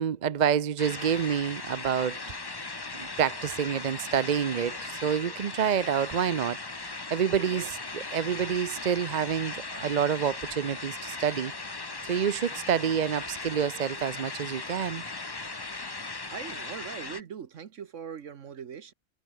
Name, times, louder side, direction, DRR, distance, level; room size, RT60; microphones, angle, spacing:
voice 1, 0.0-2.2 2.9-11.5 12.1-15.0, right 8 dB, 50° right, 0.5 m, -28 dB
sound 1, 0.8-17.2, left 3 dB, 20° left, 0.9 m, -38 dB
voice 2, 7.3-7.7 16.3-18.9, right 7 dB, 65° right, 1.4 m, -41 dB
omnidirectional pair, 1.4 m